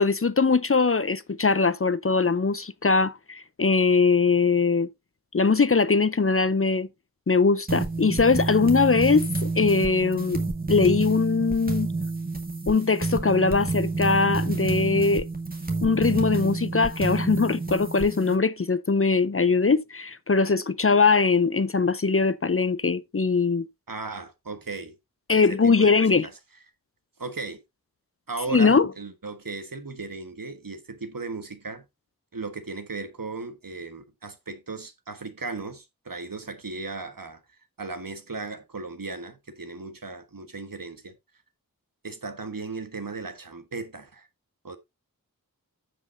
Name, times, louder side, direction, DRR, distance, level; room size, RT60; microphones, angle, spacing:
voice 1, 0.0-4.9 5.3-6.9 7.3-10.4 10.7-11.9 12.7-15.3 15.8-23.7 25.3-26.3 28.5-28.9, left 4 dB, 40° left, 0.6 m, -21 dB
sound 1, 7.7-18.4, right 3 dB, 25° right, 2.0 m, -29 dB
voice 2, 23.9-24.9 25.3-26.3 27.2-27.6 28.3-31.8 32.3-37.4 37.8-41.1 42.0-44.3 44.6-44.8, right 3 dB, 65° right, 1.4 m, -36 dB
15.0 x 5.1 x 2.6 m
wide cardioid pair, 45°, 36 cm